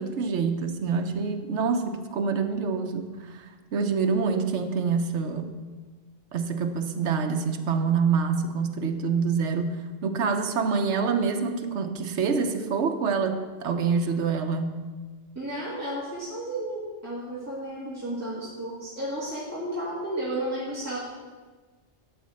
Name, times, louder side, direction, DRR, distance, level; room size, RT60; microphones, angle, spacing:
voice 1, 0.0-5.5 6.3-14.7, right 5 dB, 80° right, 5 dB, 1.1 m, -26 dB
voice 2, 15.4-21.0, right 1 dB, 15° right, -8 dB, 1.9 m, -33 dB
11.5 x 4.3 x 7.6 m, 1.4 s
omnidirectional pair, 1.2 m